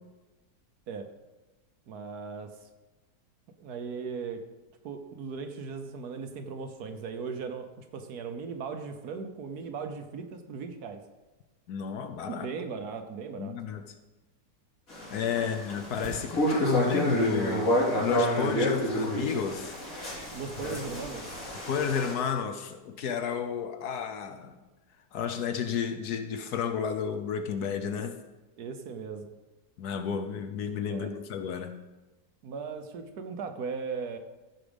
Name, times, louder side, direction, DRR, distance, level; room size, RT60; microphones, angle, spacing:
voice 1, 1.9-2.5 3.6-4.4 4.8-11.0 12.4-13.5 15.4-15.5 20.3-21.6 28.6-29.3 30.9-31.1 32.4-34.2, right 5 dB, 65° right, 7 dB, 1.3 m, -38 dB
voice 2, 11.7-12.5 13.4-13.8 15.1-19.7 20.6-20.8 21.7-24.6 25.1-28.2 29.8-31.7, left 7 dB, 65° left, 8 dB, 1.2 m, -31 dB
sound 1, 14.9-22.1, equal, 50° left, 3.6 m, -29 dB
15.0 x 5.0 x 5.2 m, 1.1 s
omnidirectional pair, 1.9 m